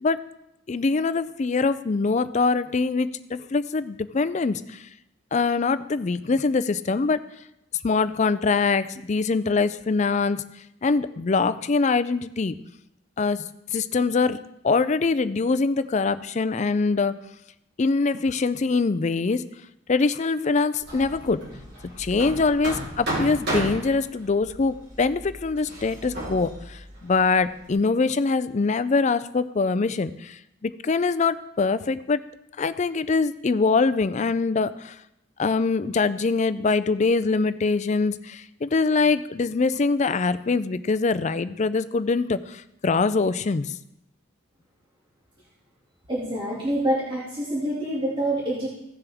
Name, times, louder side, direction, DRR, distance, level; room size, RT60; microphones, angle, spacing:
voice 1, 0.7-4.9 5.3-7.2 7.8-10.4 10.8-12.5 13.2-14.4 14.6-17.1 17.8-19.4 19.9-21.4 22.0-32.2 32.6-35.0 35.4-43.7, left 4 dB, 35° left, 14 dB, 0.4 m, -23 dB
Hammer, 20.8-27.7, right 1 dB, 55° right, 3.6 m, -34 dB
voice 2, 46.1-48.7, right 1 dB, 25° right, -8 dB, 2.2 m, -26 dB
16.0 x 7.0 x 3.5 m, 0.83 s
head